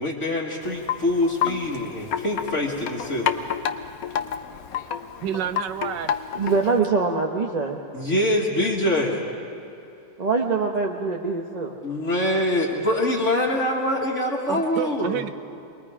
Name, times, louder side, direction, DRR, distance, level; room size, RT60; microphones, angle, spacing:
voice 1, 0.0-3.3 7.9-9.2 11.8-15.2, left 1 dB, 45° left, -4 dB, 2.0 m, -24 dB
Wind chime, 0.6-6.8, left 8 dB, 60° left, 1.1 m, -30 dB
voice 2, 5.2-6.2 14.5-15.3, right 10 dB, 90° right, 10 dB, 1.4 m, -29 dB
voice 3, 6.3-8.0 10.2-11.8, right 4 dB, 30° right, 1 dB, 0.8 m, -24 dB
28.0 x 21.0 x 4.9 m, 2.8 s
omnidirectional pair, 1.9 m